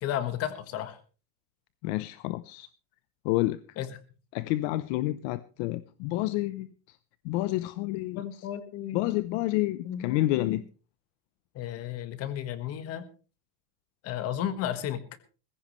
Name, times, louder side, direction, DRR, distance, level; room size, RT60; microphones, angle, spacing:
voice 1, 0.0-1.0 3.8-3.9 8.1-9.0 9.8-10.6 11.5-13.0 14.0-15.1, left 11 dB, 35° left, 12 dB, 1.5 m, -33 dB
voice 2, 1.8-2.7 3.2-3.6 4.3-6.7 7.2-8.2 8.9-10.6, left 17 dB, 55° left, 15 dB, 0.8 m, -29 dB
20.0 x 16.0 x 3.1 m, 0.36 s
cardioid pair, 175°, 43 cm